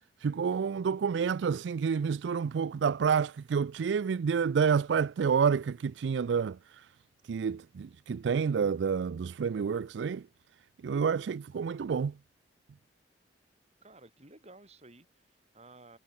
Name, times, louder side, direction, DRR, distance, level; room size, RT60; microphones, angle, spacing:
voice 1, 0.2-6.9 7.2-10.3 10.8-12.2, right 6 dB, 70° right, 0.4 m, -29 dB
voice 2, 13.8-16.0, right 2 dB, 35° right, 5.6 m, -55 dB
head